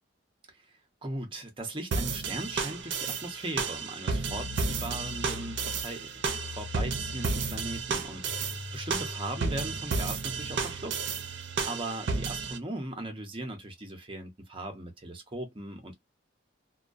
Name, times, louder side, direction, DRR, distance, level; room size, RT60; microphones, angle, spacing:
voice 1, 0.7-6.1 6.5-11.0 11.6-15.9, right 1 dB, 25° right, 0.7 m, -39 dB
sound 1, 1.9-12.6, right 4 dB, 65° right, 0.5 m, -32 dB
sound 2, 4.3-11.8, left 3 dB, 60° left, 0.6 m, -43 dB
2.2 x 2.2 x 2.5 m
head